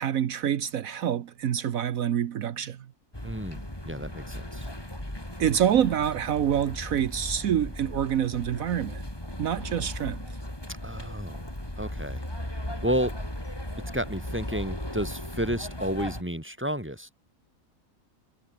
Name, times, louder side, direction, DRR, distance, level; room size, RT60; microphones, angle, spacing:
voice 1, 0.0-2.8 5.4-9.0 9.4-10.2, right 9 dB, 75° right, 1.3 m, -26 dB
sound 1, 3.1-16.2, left 1 dB, 15° left, 4.9 m, -37 dB
voice 2, 3.2-4.7 10.8-11.5 11.8-12.2 12.8-13.2 13.9-17.1, equal, 10° right, 5.5 m, -31 dB
omnidirectional pair, 1.5 m